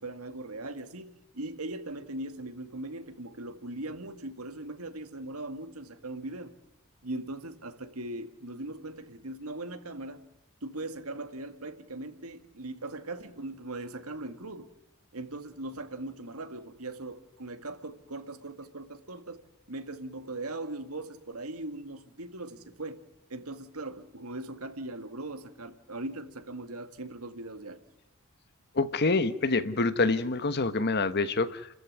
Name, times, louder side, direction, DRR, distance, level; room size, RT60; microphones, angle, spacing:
voice 1, 0.0-6.5 7.0-10.2 10.6-14.7 15.1-23.0 23.3-27.8, right 2 dB, 90° right, 2.1 m, -39 dB
voice 2, 28.7-31.7, left 3 dB, 50° left, 1.2 m, -26 dB
29.5 x 14.0 x 9.6 m
head